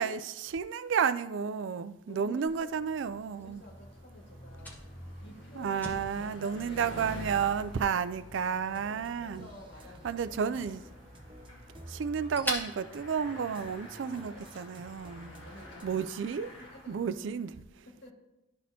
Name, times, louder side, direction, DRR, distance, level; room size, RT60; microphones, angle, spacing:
voice 1, 0.0-3.6 5.5-9.5 10.0-10.8 11.9-15.3 15.8-16.5 16.9-17.9, right 6 dB, 80° right, 14 dB, 0.4 m, -32 dB
voice 2, 2.0-2.7 3.0-4.8 5.2-7.2 7.8-8.0 8.6-10.4 13.5-16.1 16.5-17.0 17.9-18.1, left 1 dB, 60° left, -1 dB, 1.7 m, -52 dB
Fire, 2.4-14.0, equal, 10° left, 1.3 m, -45 dB
Bicycle, 2.7-17.4, equal, 80° left, 1.7 m, -49 dB
sound 1, 8.7-15.9, right 1 dB, 25° right, 0.7 m, -52 dB
12.5 x 4.2 x 2.8 m, 0.95 s
head